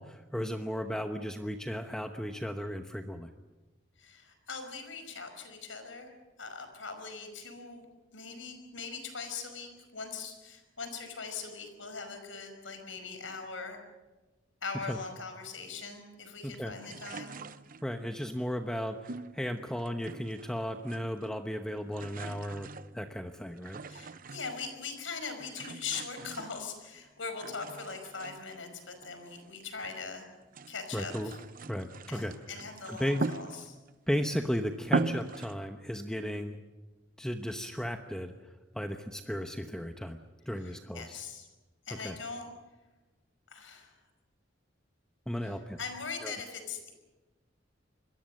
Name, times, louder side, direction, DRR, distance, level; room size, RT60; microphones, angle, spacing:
voice 1, 0.0-3.3 14.9-15.0 16.4-16.7 17.8-22.7 22.9-23.8 30.9-31.3 31.7-32.3 32.9-33.2 34.1-36.6 37.2-40.2 40.5-41.2 42.0-42.1 45.3-45.8 46.2-46.3, equal, 5° left, 5 dB, 1.0 m, -35 dB
voice 2, 4.0-6.1 6.4-7.9 8.1-13.8 14.6-17.4 23.9-30.3 30.7-31.4 32.1-33.8 40.6-41.5 41.9-42.5 43.5-44.0 45.4-46.9, left 5 dB, 90° left, 7 dB, 5.3 m, -41 dB
sound 1, 16.8-18.1 19.0-20.5 20.8-21.4 21.7-24.8 25.4-27.0 27.4-30.0 30.4-34.0 34.4-34.5 34.8-35.6, right 3 dB, 45° right, 0.8 m, -39 dB
26.5 x 21.5 x 6.6 m, 1.2 s
head